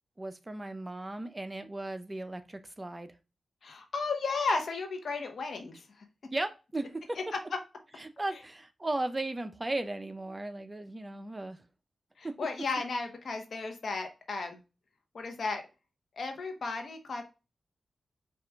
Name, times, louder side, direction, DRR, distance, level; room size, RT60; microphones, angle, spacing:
voice 1, 0.2-3.1 6.3-7.2 8.0-11.6 12.2-12.3, right 2 dB, 25° right, 9 dB, 0.6 m, -36 dB
voice 2, 3.6-5.8 7.1-7.2 12.2-14.6 15.1-15.6 16.2-17.3, left 4 dB, 70° left, 5 dB, 0.9 m, -34 dB
4.8 x 2.5 x 3.3 m, 0.29 s
cardioid pair, 50°, 0 cm